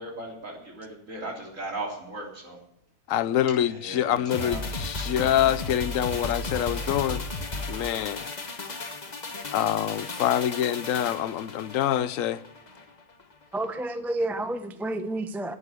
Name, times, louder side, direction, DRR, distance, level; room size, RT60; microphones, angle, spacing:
voice 1, 0.0-2.6 3.6-4.6 5.0-5.3, right 2 dB, 55° right, 3.9 m, -37 dB
voice 2, 3.1-7.2 7.7-8.3 9.5-12.4, left 11 dB, 65° left, 1.0 m, -26 dB
sound 1, 4.3-12.9 13.2-13.3, left 2 dB, 30° left, 1.3 m, -35 dB
voice 3, 13.5-15.5, right 2 dB, ahead, 0.6 m, -30 dB
11.5 x 8.4 x 9.7 m
omnidirectional pair, 1.6 m